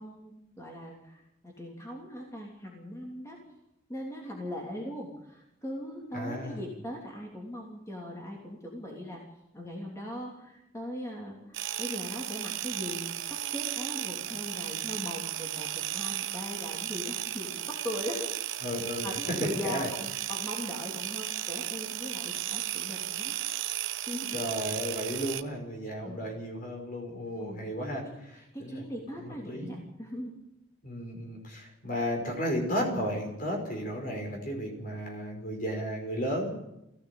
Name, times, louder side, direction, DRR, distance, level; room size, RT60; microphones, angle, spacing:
voice 1, 0.0-3.4 3.9-9.2 9.5-18.6 19.0-23.3 24.1-24.4 26.0-26.3 27.4-30.4, equal, 15° left, -2 dB, 3.1 m, -40 dB
voice 2, 6.1-6.6 18.6-19.1 19.6-19.9 24.3-28.0 28.6-28.8 29.1-29.8 30.8-36.5, equal, 45° left, 2 dB, 5.4 m, -34 dB
sound 1, 11.5-25.4, right 12 dB, 85° right, 1.0 m, -35 dB
19.5 x 15.5 x 8.5 m, 0.89 s
head